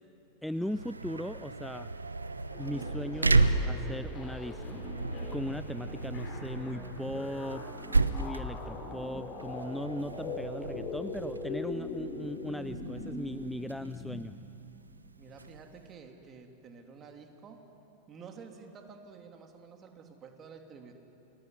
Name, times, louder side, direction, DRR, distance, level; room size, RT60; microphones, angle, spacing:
voice 1, 0.4-1.9 2.6-4.8 5.3-7.6 8.1-14.4, equal, ahead, 13 dB, 0.5 m, -38 dB
sound 1, 0.5-15.9, right 3 dB, 80° right, 0.9 m, -33 dB
sound 2, 2.5-14.1, left 3 dB, 35° left, 5.7 m, -42 dB
voice 2, 15.2-17.6 18.1-20.9, right 5 dB, 25° right, 4 dB, 2.9 m, -50 dB
29.0 x 21.0 x 9.7 m, 3.0 s
figure-of-eight pair, 90°, 0 cm